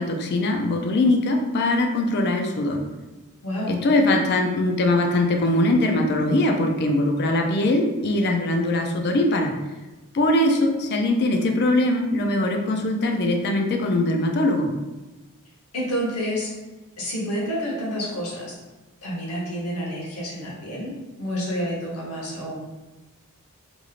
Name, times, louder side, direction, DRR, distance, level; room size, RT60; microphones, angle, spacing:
voice 1, 0.0-2.8 3.7-9.5 10.1-14.7, left 1 dB, 50° left, 3 dB, 0.4 m, -21 dB
voice 2, 3.4-3.8 15.7-16.5 17.0-18.6 19.0-22.6, equal, 75° left, -4 dB, 1.0 m, -29 dB
3.0 x 2.6 x 2.4 m, 1.1 s
head